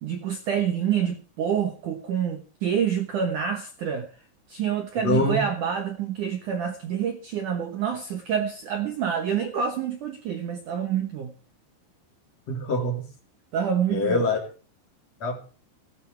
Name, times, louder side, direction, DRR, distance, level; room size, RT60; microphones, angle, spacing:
voice 1, 0.0-4.1 4.5-11.3 13.5-14.3, right 8 dB, 85° right, 1.7 m, -27 dB
voice 2, 5.0-5.4 12.5-13.1 13.9-14.4 15.2-15.4, left 2 dB, 35° left, 4.1 m, -24 dB
17.5 x 17.0 x 3.4 m
omnidirectional pair, 5.6 m